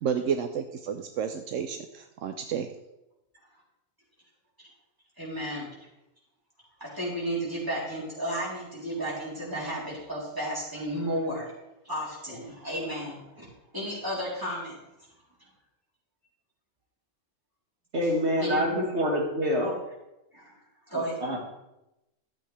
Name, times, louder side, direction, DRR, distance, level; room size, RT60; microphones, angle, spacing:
voice 1, 0.0-2.7, right 7 dB, 80° right, 7 dB, 1.0 m, -31 dB
voice 2, 5.2-5.7 6.8-11.5 11.8-13.5 13.7-14.8 18.4-18.8 19.6-19.7 20.3-20.5 20.9-21.2, equal, 15° right, -6 dB, 3.3 m, -33 dB
voice 3, 17.9-19.7 20.9-21.4, equal, 60° right, -2 dB, 1.9 m, -26 dB
12.5 x 7.8 x 3.2 m, 0.92 s
omnidirectional pair, 1.3 m